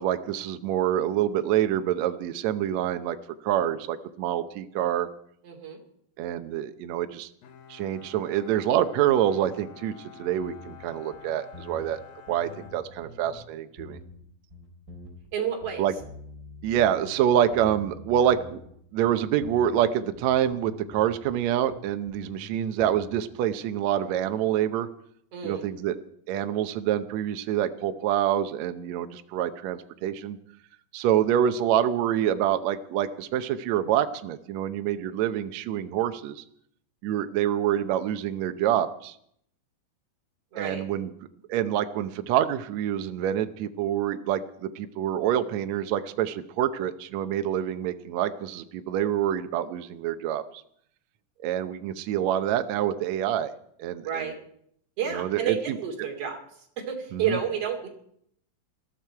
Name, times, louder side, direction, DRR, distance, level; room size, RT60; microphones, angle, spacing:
voice 1, 0.0-3.2 3.4-5.1 6.2-7.3 7.7-12.0 12.3-14.0 15.8-15.9 16.6-18.6 18.9-24.9 25.4-26.0 26.3-30.4 30.9-36.4 37.0-39.2 40.6-41.1 41.5-50.4 51.4-53.5 53.8-54.3 55.1-55.8 57.1-57.4, right 10 dB, 70° right, 9 dB, 1.7 m, -26 dB
voice 2, 5.4-5.8 15.3-15.9 25.3-25.6 40.5-40.8 54.0-54.4 55.0-57.9, right 7 dB, 45° right, 1 dB, 3.4 m, -30 dB
Bowed string instrument, 7.4-13.6, left 8 dB, 80° left, 3.0 m, -49 dB
sound 1, 10.4-10.9 11.1-11.2 11.5-12.0 12.3-13.4 13.8-14.2 14.5-15.3 15.6-18.7 19.0-21.8 22.1-22.4 22.8-23.3, left 2 dB, 25° right, 3.9 m, -46 dB
21.0 x 14.0 x 4.6 m, 0.70 s
omnidirectional pair, 4.1 m